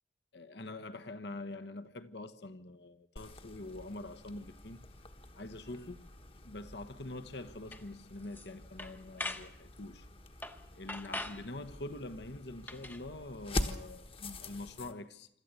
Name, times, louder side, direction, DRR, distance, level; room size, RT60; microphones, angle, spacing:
voice 1, 0.3-4.8 5.3-5.9 6.4-10.1 10.7-15.3, left 2 dB, 70° left, 1.2 m, -45 dB
sound 1, 3.2-14.9, left 2 dB, 30° left, 1.3 m, -45 dB
sound 2, 7.7-7.8 8.2-8.5 8.8-9.5 10.4-10.6 10.9-11.4 12.6-13.0, left 2 dB, 10° left, 0.9 m, -41 dB
26.5 x 13.5 x 8.3 m
head